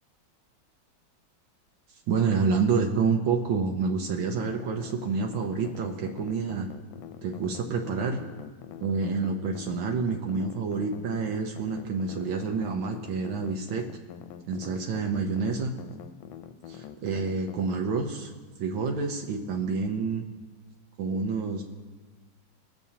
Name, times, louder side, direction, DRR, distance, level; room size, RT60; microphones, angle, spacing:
voice 1, 2.1-6.7 7.2-8.2 8.8-13.8 14.5-15.7 16.7-18.3 18.6-20.2 21.0-21.6, right 5 dB, 75° right, 2 dB, 1.6 m, -28 dB
sound 1, 4.4-17.8, left 10 dB, 80° left, 1.4 m, -44 dB
20.0 x 7.1 x 2.8 m, 1.3 s
omnidirectional pair, 2.2 m